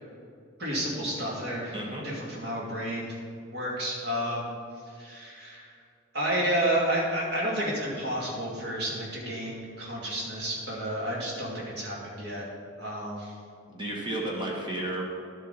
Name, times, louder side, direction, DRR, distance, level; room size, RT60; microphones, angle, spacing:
voice 1, 0.6-1.7 2.0-3.2 3.5-4.5 5.0-5.7 6.1-12.5 12.8-13.3, right 1 dB, 55° right, -4 dB, 2.6 m, -31 dB
voice 2, 1.7-2.0 13.7-15.0, right 1 dB, 25° right, -3 dB, 1.6 m, -32 dB
11.5 x 7.5 x 4.2 m, 2.4 s
head